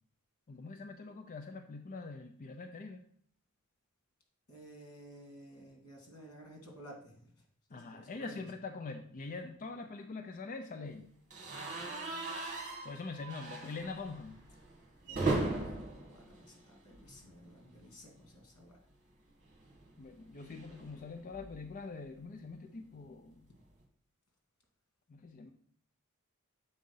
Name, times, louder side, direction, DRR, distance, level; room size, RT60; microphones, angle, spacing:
voice 1, 0.5-3.0 7.7-11.1 12.8-14.4 20.0-23.5 25.1-25.5, left 3 dB, 40° left, 5 dB, 0.5 m, -44 dB
voice 2, 4.5-7.3 7.7-8.4 15.0-18.8, right 1 dB, 85° left, 0 dB, 2.3 m, -54 dB
sound 1, 11.3-17.3 17.6-17.8 18.1-18.2 19.5-21.8, right 2 dB, 35° right, 1.8 m, -39 dB
7.2 x 3.8 x 5.4 m, 0.62 s
head